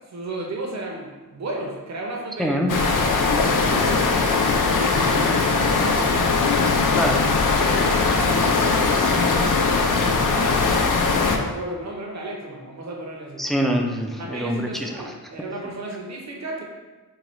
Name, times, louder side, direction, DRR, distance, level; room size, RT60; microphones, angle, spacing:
voice 1, 0.1-6.4 7.6-10.8 11.2-13.4 14.2-16.6, right 1 dB, 45° right, -1 dB, 0.7 m, -33 dB
voice 2, 2.4-2.7 6.9-7.2 13.4-15.1, equal, ahead, 1 dB, 0.4 m, -25 dB
sound 1, 2.7-11.4, left 4 dB, 55° left, 0.5 m, -20 dB
4.7 x 2.4 x 3.0 m, 1.2 s
wide cardioid pair, 85°, 37 cm